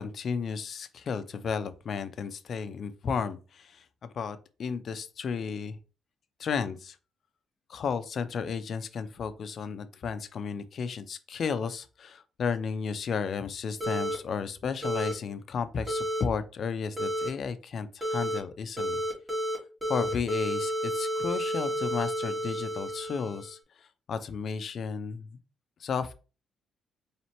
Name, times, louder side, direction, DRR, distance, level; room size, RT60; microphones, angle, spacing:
voice 1, 0.0-5.8 6.4-7.0 7.7-19.0 19.9-25.4 25.8-26.1, left 6 dB, 55° left, 12 dB, 0.5 m, -33 dB
sound 1, 13.8-14.2 14.8-15.1 15.9-16.2 17.0-17.3 18.0-18.4 18.8-19.6 19.8-23.5, equal, 10° right, 2.2 m, -31 dB
4.2 x 3.2 x 2.9 m, 0.33 s
cardioid pair, 90°, 0 cm